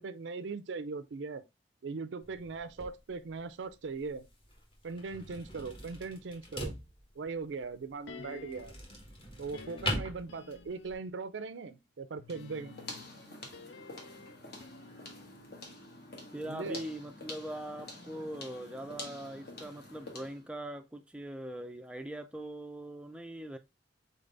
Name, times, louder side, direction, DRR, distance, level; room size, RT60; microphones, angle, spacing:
voice 1, 0.0-1.4 1.8-4.3 4.8-6.7 7.2-8.8 9.4-12.8 16.4-16.8, right 4 dB, 75° right, 0.5 m, -40 dB
sound 1, 2.2-10.9, left 1 dB, 30° left, 1.2 m, -42 dB
sound 2, 8.1-8.9 9.5-11.2 12.2-16.4 16.7-16.8, left 4 dB, 75° left, 0.5 m, -51 dB
sound 3, 12.3-20.5, left 2 dB, 60° left, 1.5 m, -48 dB
voice 2, 16.3-23.6, right 1 dB, 5° right, 0.4 m, -41 dB
4.0 x 3.9 x 3.3 m
head